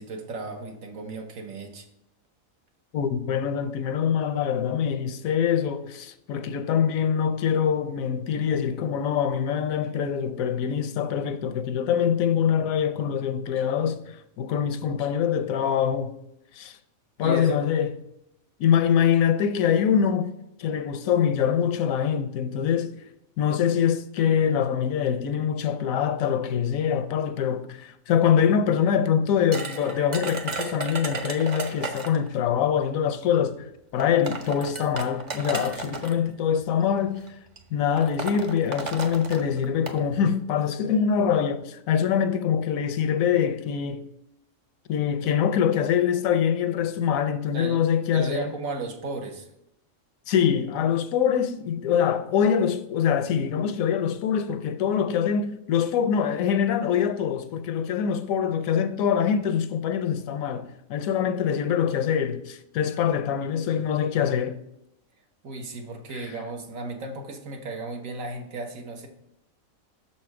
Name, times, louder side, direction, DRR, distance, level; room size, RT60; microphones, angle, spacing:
voice 1, 0.0-1.9 17.2-17.6 47.5-47.8 48.1-49.5 65.4-69.1, right 2 dB, 75° right, 1.4 m, -34 dB
voice 2, 2.9-16.1 16.5-16.8 17.2-17.9 18.6-20.3 20.6-22.9 23.4-37.3 37.7-44.0 44.9-48.5 50.3-64.6 66.1-66.3, left 8 dB, 80° left, 1.0 m, -24 dB
sound 1, 29.5-32.3 33.3-33.4 34.0-36.1 37.0-37.3 37.6-37.7 38.0-40.0, right 3 dB, 45° right, 0.6 m, -34 dB
6.4 x 4.3 x 4.7 m
omnidirectional pair, 1.5 m